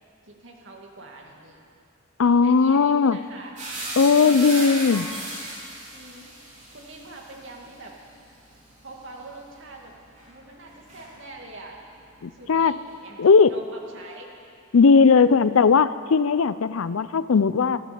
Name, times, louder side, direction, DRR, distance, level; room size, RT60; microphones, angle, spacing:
voice 1, 0.2-1.6 2.2-3.6 4.0-5.0 5.9-8.0 8.8-10.0 10.3-11.8 12.3-14.3 15.1-15.3, right 2 dB, 65° right, 0 dB, 2.2 m, -44 dB
voice 2, 2.2-3.2 4.0-5.0 12.2-12.8 13.2-13.5 14.7-17.8, left 5 dB, 90° left, 15 dB, 0.5 m, -18 dB
sound 1, 3.6-11.5 11.8-12.9, right 1 dB, 35° right, 4.3 m, -37 dB
13.0 x 12.5 x 8.6 m, 2.5 s
head